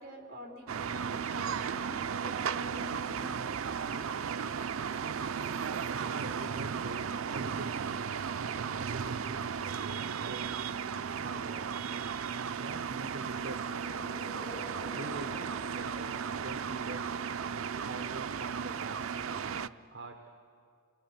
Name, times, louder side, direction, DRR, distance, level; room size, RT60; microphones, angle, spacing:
voice 1, 0.0-3.7, equal, 45° right, -1 dB, 3.9 m, -47 dB
sound 1, 0.7-19.7, right 6 dB, 80° right, 0.5 m, -35 dB
voice 2, 5.9-10.6 11.2-11.7 12.6-14.1 14.9-17.3 17.9-20.3, right 2 dB, 60° right, 4 dB, 1.2 m, -45 dB
sound 2, 13.0-17.9, left 2 dB, 40° left, 3.6 m, -51 dB
29.0 x 20.5 x 6.0 m, 2.3 s
head